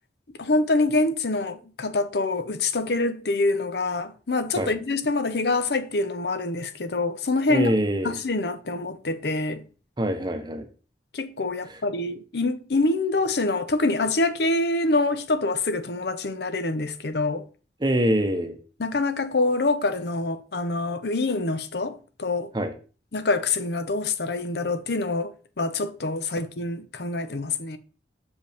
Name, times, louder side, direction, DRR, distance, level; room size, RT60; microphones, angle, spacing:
voice 1, 0.4-7.7 8.0-9.6 11.1-17.5 18.8-22.5 23.1-27.8, left 2 dB, 65° left, 0.8 m, -25 dB
voice 2, 7.5-8.1 10.0-10.7 17.8-18.6 22.5-22.7, equal, 25° right, 0.9 m, -24 dB
6.7 x 5.1 x 3.4 m
head